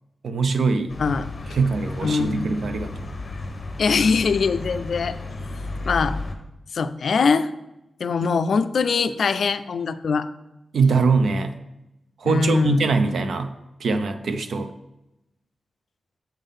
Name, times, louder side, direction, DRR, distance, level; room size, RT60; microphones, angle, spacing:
voice 1, 0.2-0.9 1.5-3.1 10.7-11.6 12.2-13.5 13.8-14.7, right 4 dB, 80° right, 8 dB, 0.5 m, -22 dB
sound 1, 0.9-6.3, left 2 dB, 30° left, 0.8 m, -33 dB
voice 2, 2.0-2.5 3.8-5.2 5.8-6.2 6.7-7.5 8.0-10.3 12.2-13.0, left 5 dB, 65° left, 12 dB, 0.3 m, -22 dB
7.3 x 3.6 x 5.5 m, 0.90 s
wide cardioid pair, 150°, 0 cm